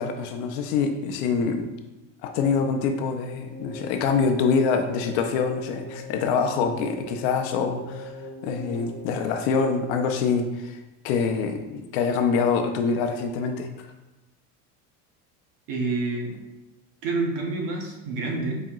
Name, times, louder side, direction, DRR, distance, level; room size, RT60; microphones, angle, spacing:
voice 1, 0.0-1.7 2.2-10.8 11.0-13.9, left 5 dB, 70° left, 5 dB, 0.6 m, -25 dB
sound 1, 3.1-10.4, left 1 dB, 5° left, 1.1 m, -40 dB
voice 2, 15.7-16.4 17.0-18.6, right 3 dB, 65° right, 0 dB, 0.9 m, -28 dB
5.0 x 2.8 x 2.4 m, 1.0 s
cardioid pair, 155°, 34 cm